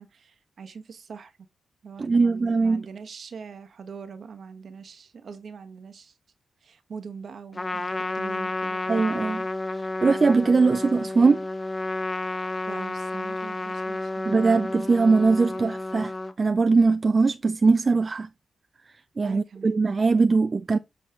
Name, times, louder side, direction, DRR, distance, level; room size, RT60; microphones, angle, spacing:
voice 1, 0.0-1.4 1.8-6.2 6.6-8.8 12.7-14.5 19.2-19.8, right 5 dB, 65° right, 1.2 m, -42 dB
voice 2, 2.0-2.9 8.9-9.4 9.7-11.4 14.3-18.3 19.2-20.8, right 4 dB, 45° right, 0.5 m, -21 dB
Trumpet, 7.5-16.3, left 2 dB, 30° left, 0.9 m, -31 dB
7.9 x 4.1 x 3.7 m
supercardioid pair, 45°, 0 cm